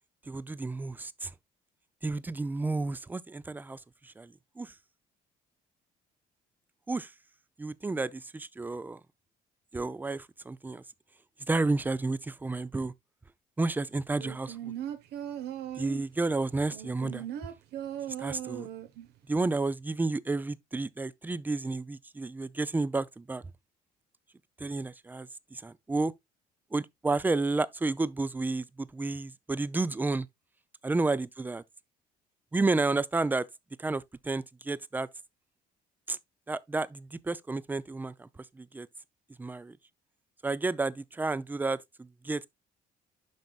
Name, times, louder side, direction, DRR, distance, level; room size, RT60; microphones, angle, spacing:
voice 1, 0.3-1.3 2.0-4.7 6.9-7.1 7.6-9.0 9.7-10.8 11.5-12.9 13.6-14.7 15.8-17.2 18.2-18.7 19.3-23.4 24.6-26.1 26.7-30.3 30.8-31.6 32.5-33.5 33.8-35.1 36.1-36.2 36.5-38.3 38.5-38.9 39.4-39.8 40.4-42.5, right 3 dB, 10° right, 0.4 m, -31 dB
sound 1, 14.2-16.1 16.7-19.1 19.4-19.5, right 10 dB, 80° right, 1.0 m, -38 dB
11.5 x 4.0 x 2.3 m
cardioid pair, 110°, 17 cm